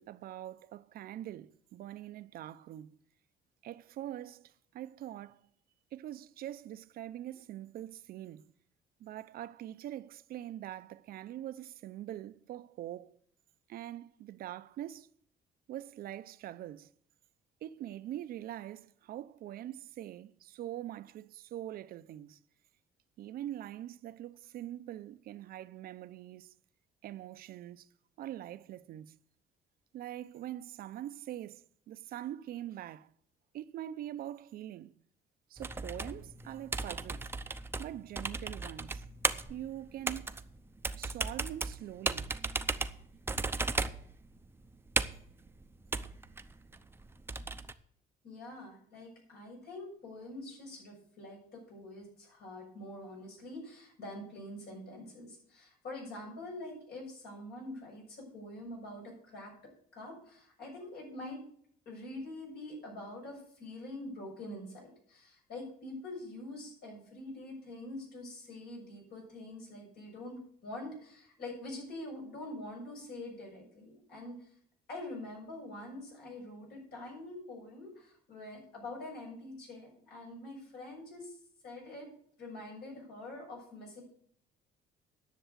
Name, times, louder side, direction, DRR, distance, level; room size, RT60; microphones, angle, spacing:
voice 1, 0.0-3.0 3.6-5.4 5.9-8.5 9.0-13.1 13.7-15.1 15.7-16.9 17.6-22.4 23.2-26.5 27.0-27.9 28.2-29.2 29.9-33.1 33.5-34.9 35.5-37.3 37.8-39.0 39.5-40.3 41.0-42.3, right 12 dB, 65° right, 0.6 m, -43 dB
sound 1, 35.6-47.7, right 3 dB, 15° right, 0.6 m, -36 dB
voice 2, 48.2-59.5 59.9-61.4 61.8-74.5 74.9-81.4 81.6-82.1 82.4-84.0, left 1 dB, 70° left, 6.8 m, -45 dB
10.0 x 6.8 x 8.0 m
cardioid pair, 110°, 17 cm